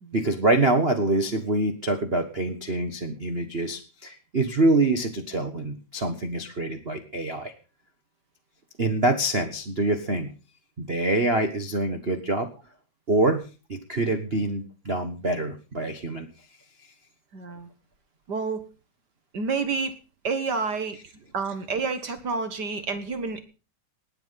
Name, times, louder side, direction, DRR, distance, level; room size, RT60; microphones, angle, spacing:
voice 1, 0.1-7.5 8.8-10.3 10.8-12.5 13.1-16.3, right 2 dB, 85° right, 5 dB, 0.5 m, -25 dB
voice 2, 17.3-17.7 18.3-18.6 19.3-20.0 20.2-21.0 21.3-23.4, right 4 dB, 50° right, 10 dB, 1.4 m, -29 dB
19.0 x 9.0 x 5.7 m, 0.34 s
omnidirectional pair, 3.6 m